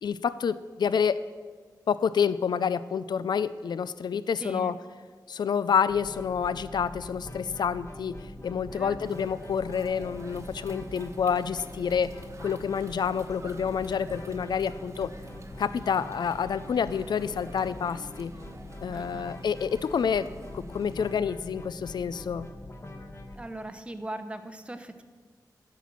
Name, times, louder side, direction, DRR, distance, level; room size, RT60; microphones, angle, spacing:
voice 1, 0.0-1.2 1.9-4.8 5.3-12.1 12.4-15.1 15.6-18.3 18.8-22.5, left 7 dB, 75° left, 16 dB, 0.3 m, -28 dB
voice 2, 4.4-4.7 8.7-8.9 18.9-19.3 23.3-25.0, right 1 dB, 15° right, 8 dB, 0.8 m, -39 dB
sound 1, 5.9-23.4, left 1 dB, 35° left, 1.1 m, -43 dB
sound 2, 9.0-21.2, right 2 dB, 40° right, 1.1 m, -49 dB
12.5 x 6.0 x 7.3 m, 1.5 s
wide cardioid pair, 110°, 7 cm